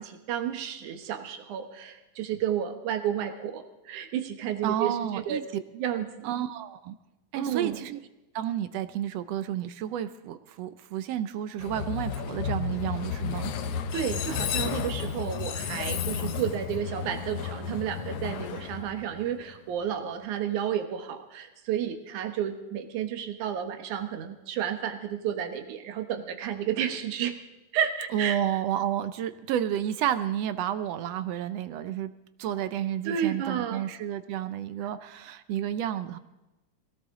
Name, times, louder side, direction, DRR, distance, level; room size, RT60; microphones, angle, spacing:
voice 1, 0.0-5.4 5.7-6.3 7.3-7.8 13.9-27.4 27.7-28.4 33.1-33.8, right 9 dB, 90° right, 6 dB, 2.7 m, -31 dB
voice 2, 4.6-5.6 6.2-6.9 7.3-8.0 8.3-13.5 28.1-32.1 32.4-36.2, right 10 dB, 75° right, 12 dB, 1.6 m, -31 dB
Train, 11.6-19.6, left 7 dB, 65° left, 1.6 m, -32 dB
21.5 x 17.0 x 3.7 m, 1.0 s
omnidirectional pair, 3.4 m